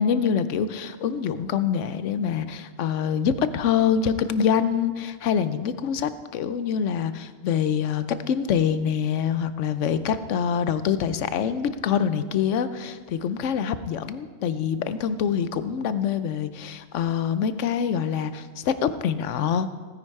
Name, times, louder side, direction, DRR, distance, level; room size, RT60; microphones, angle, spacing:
voice 1, 0.0-19.7, left 7 dB, 70° left, 13 dB, 1.0 m, -25 dB
16.5 x 9.9 x 4.7 m, 1.5 s
omnidirectional pair, 1.3 m